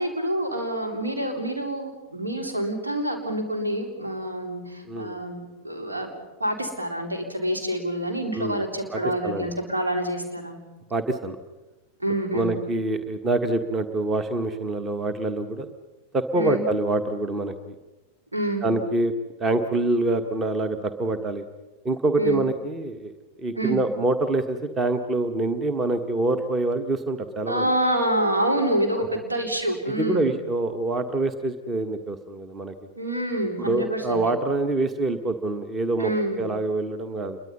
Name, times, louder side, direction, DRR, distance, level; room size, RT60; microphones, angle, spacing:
voice 1, 0.0-6.1 6.4-10.6 12.0-12.5 16.3-16.6 18.3-18.7 22.2-22.4 23.6-23.8 27.5-30.3 32.9-34.2 36.0-36.4, right 1 dB, 80° right, 3 dB, 4.0 m, -27 dB
voice 2, 8.3-8.6 8.9-9.5 10.9-11.4 12.3-15.7 16.1-17.7 18.6-19.1 19.4-21.4 21.8-23.1 23.4-27.7 29.9-32.7 33.6-36.1 36.4-37.4, right 2 dB, 20° right, 10 dB, 1.5 m, -26 dB
28.0 x 22.5 x 5.6 m, 1.1 s
figure-of-eight pair, 90°, 0 cm